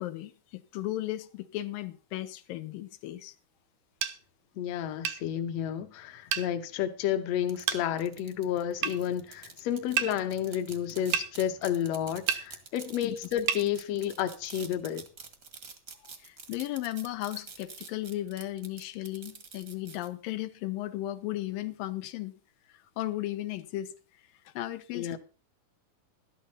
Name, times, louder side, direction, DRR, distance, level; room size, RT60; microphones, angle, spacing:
voice 1, 0.0-3.4 13.0-13.2 16.2-22.3 22.7-23.9 24.5-25.2, left 15 dB, 85° left, 2.6 m, -35 dB
sound 1, 4.0-4.2 5.1-5.2 6.3-6.5 7.7-7.8 8.8-9.0 10.0-10.1 11.1-11.3 12.3-12.5 13.5-13.7, right 8 dB, 80° right, 2.5 m, -29 dB
voice 2, 4.6-15.0 24.9-25.2, left 10 dB, 65° left, 1.9 m, -31 dB
sound 2, 7.5-20.1, right 5 dB, 45° right, 1.1 m, -46 dB
12.5 x 11.5 x 4.2 m
omnidirectional pair, 3.9 m